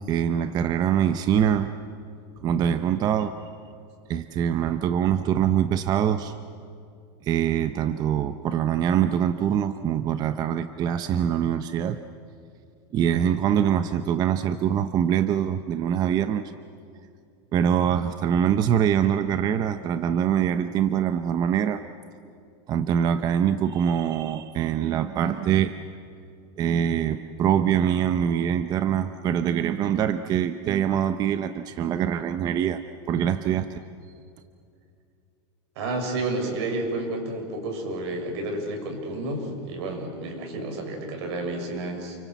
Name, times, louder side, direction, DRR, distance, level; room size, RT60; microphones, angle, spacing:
voice 1, 0.0-1.7 2.4-3.3 4.1-6.4 7.2-12.0 12.9-16.5 17.5-21.8 22.7-25.7 26.6-32.8 33.1-33.7, right 9 dB, 30° right, 10 dB, 0.7 m, -24 dB
voice 2, 35.7-42.2, right 2 dB, 75° right, 3 dB, 6.7 m, -30 dB
29.0 x 24.0 x 8.2 m, 2.5 s
supercardioid pair, 160°, 14 cm